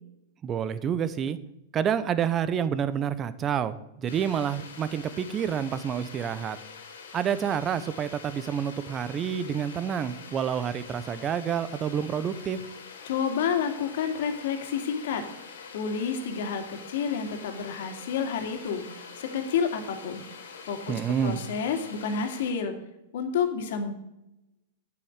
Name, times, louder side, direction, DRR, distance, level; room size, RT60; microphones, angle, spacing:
voice 1, 0.4-1.4 1.7-6.6 7.1-12.6 20.9-21.4, right 8 dB, 25° right, 14 dB, 0.9 m, -28 dB
sound 1, 4.1-22.5, left 5 dB, 85° left, 2.7 m, -45 dB
voice 2, 13.0-15.2 15.7-20.2 20.7-20.9 21.2-22.7 23.1-23.9, left 6 dB, 70° left, 6 dB, 2.4 m, -29 dB
10.5 x 8.4 x 6.6 m, 0.88 s
hypercardioid pair, 125°, 0 cm